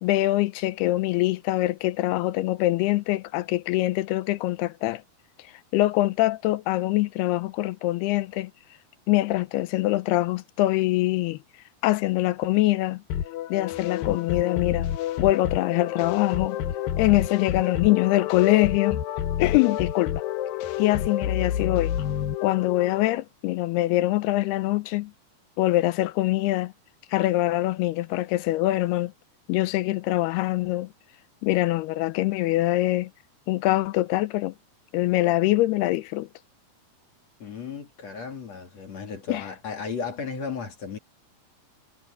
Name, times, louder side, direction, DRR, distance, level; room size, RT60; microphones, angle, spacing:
voice 1, 0.0-5.0 5.7-8.5 9.1-11.4 11.8-13.0 13.5-14.9 15.2-16.6 17.0-19.0 19.4-20.2 20.8-21.9 22.4-25.1 25.6-26.7 27.1-29.1 29.5-30.9 31.4-33.1 33.5-34.5 34.9-36.3 39.3-39.4, left 17 dB, 90° left, 2.7 m, -24 dB
sound 1, 13.1-23.2, left 11 dB, 70° left, 2.6 m, -29 dB
voice 2, 37.4-41.0, left 5 dB, 45° left, 3.3 m, -35 dB
omnidirectional pair, 4.6 m